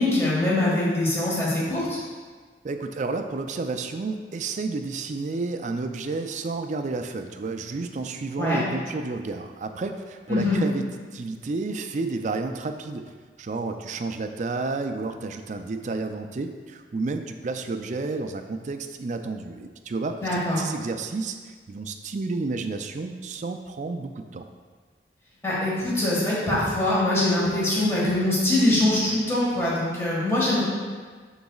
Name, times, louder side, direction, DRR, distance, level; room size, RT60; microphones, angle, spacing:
voice 1, 0.0-2.0 8.4-8.6 10.3-10.6 20.2-20.6 25.4-30.6, left 1 dB, 15° left, -8 dB, 1.6 m, -23 dB
voice 2, 2.6-13.1 13.4-24.4, right 3 dB, 45° right, 7 dB, 0.4 m, -31 dB
11.5 x 4.0 x 2.4 m, 1.5 s
head